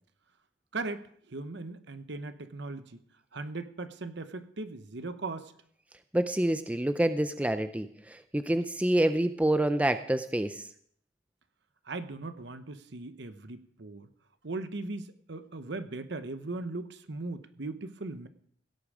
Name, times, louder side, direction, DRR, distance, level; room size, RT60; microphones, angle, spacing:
voice 1, 0.7-3.0 3.3-5.5 11.9-14.1 14.4-18.3, right 3 dB, 60° right, 11 dB, 0.9 m, -38 dB
voice 2, 6.1-10.7, right 1 dB, 5° right, 10 dB, 0.4 m, -27 dB
16.5 x 8.7 x 5.0 m, 0.62 s
head